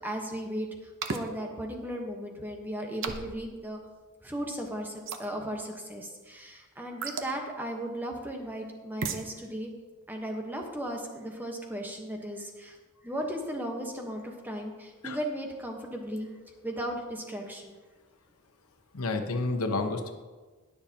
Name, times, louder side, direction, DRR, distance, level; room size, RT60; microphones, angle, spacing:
voice 1, 0.0-3.8 4.2-9.7 10.1-12.8 13.0-16.3 16.6-17.7, right 1 dB, 10° right, 1 dB, 1.2 m, -36 dB
sound 1, 1.0-1.3 3.0-3.4 5.1-5.3 7.0-7.3 9.0-9.3, right 5 dB, 60° right, 0.8 m, -33 dB
voice 2, 18.9-20.1, left 3 dB, 90° left, 5 dB, 1.0 m, -30 dB
20.0 x 6.7 x 2.9 m, 1.3 s
head